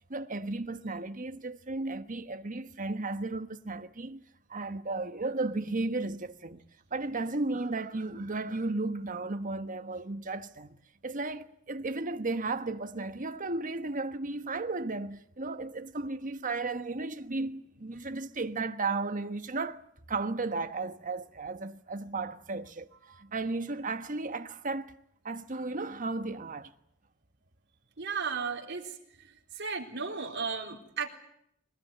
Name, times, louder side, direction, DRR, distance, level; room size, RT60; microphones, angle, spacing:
voice 1, 0.1-4.2 4.5-6.6 6.9-19.8 20.1-22.9 23.2-25.0 25.2-26.7, right 3 dB, 40° right, 1.3 m, -34 dB
voice 2, 28.0-28.9 29.6-31.1, right 5 dB, 60° right, 3.8 m, -34 dB
22.5 x 20.0 x 9.3 m
head